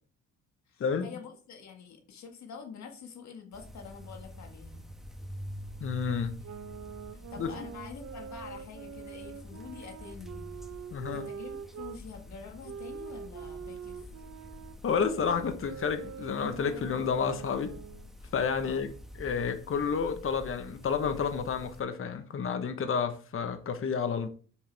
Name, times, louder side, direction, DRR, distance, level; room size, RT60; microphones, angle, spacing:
voice 1, 0.7-4.9 7.1-10.8 11.1-14.1 18.6-18.8, left 6 dB, 65° left, 1.8 m, -47 dB
sound 1, 3.5-21.8, left 1 dB, ahead, 1.4 m, -47 dB
voice 2, 5.8-6.4 7.4-7.5 10.9-11.3 14.8-17.8 18.3-18.9 19.2-24.3, left 6 dB, 45° left, 1.1 m, -30 dB
sound 2, 6.4-12.0 12.6-18.1, right 7 dB, 60° right, 0.9 m, -44 dB
7.9 x 6.7 x 3.4 m
cardioid pair, 90°, 30 cm